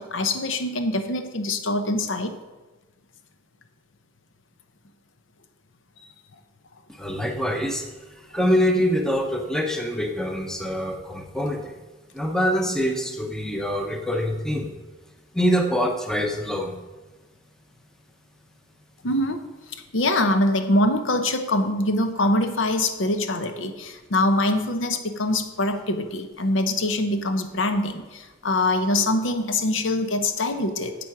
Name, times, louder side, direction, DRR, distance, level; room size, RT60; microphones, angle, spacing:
voice 1, 0.0-2.3 19.0-19.5 19.9-31.0, left 1 dB, 75° left, 7 dB, 0.8 m, -24 dB
voice 2, 6.9-7.9 8.1-11.8 12.1-14.7 15.3-16.8, equal, 5° left, 3 dB, 0.7 m, -25 dB
10.0 x 7.7 x 4.8 m, 1.2 s
head